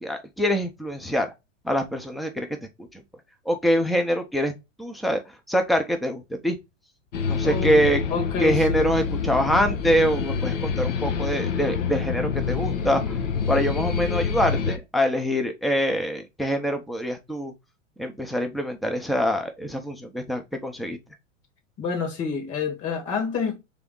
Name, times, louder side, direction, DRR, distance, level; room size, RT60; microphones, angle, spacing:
voice 1, 0.0-1.3 1.6-2.5 3.5-4.5 4.8-5.2 5.5-6.6 7.3-8.0 8.4-13.2 13.5-17.5 18.0-21.0, equal, ahead, 0.7 m, -24 dB
sound 1, 7.1-14.8, left 6 dB, 70° left, 1.1 m, -26 dB
voice 2, 7.4-7.8 8.1-8.7 21.8-23.6, left 5 dB, 40° left, 1.9 m, -28 dB
3.6 x 3.4 x 3.8 m
hypercardioid pair, 110°, 38 cm